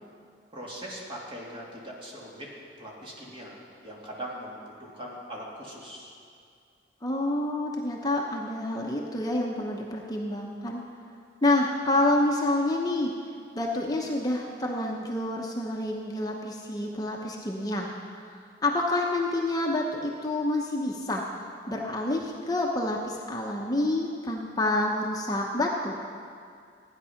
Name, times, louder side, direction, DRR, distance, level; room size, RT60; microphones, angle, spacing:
voice 1, 0.5-2.5 2.8-6.2, equal, 30° right, -4 dB, 2.6 m, -41 dB
voice 2, 7.0-10.8 11.4-13.1 13.5-17.9 18.6-21.2 21.7-25.9, left 1 dB, 20° left, -1 dB, 0.9 m, -28 dB
15.5 x 9.9 x 5.8 m, 2.3 s
head